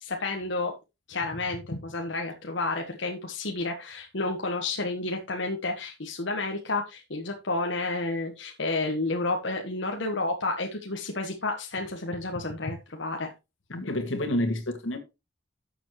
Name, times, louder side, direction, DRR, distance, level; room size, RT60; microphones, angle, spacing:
voice 1, 0.0-0.7 1.1-13.3, left 2 dB, 65° left, 1.4 m, -31 dB
voice 2, 13.7-15.0, left 1 dB, 85° left, 2.0 m, -28 dB
12.0 x 7.2 x 3.1 m
head